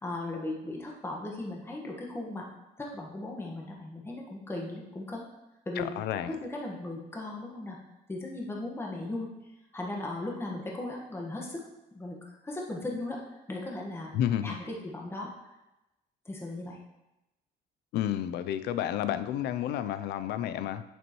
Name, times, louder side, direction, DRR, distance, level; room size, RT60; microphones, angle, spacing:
voice 1, 0.0-2.5 2.8-5.2 5.6-5.9 6.3-7.8 8.1-9.3 9.7-11.6 11.9-13.2 13.5-14.1 14.4-15.3 16.2-16.8, left 2 dB, 15° left, -1 dB, 1.4 m, -37 dB
voice 2, 5.8-6.4 14.1-14.6 17.9-20.8, left 11 dB, 75° left, 13 dB, 0.5 m, -31 dB
8.2 x 7.5 x 3.1 m, 0.95 s
cardioid pair, 110°, 17 cm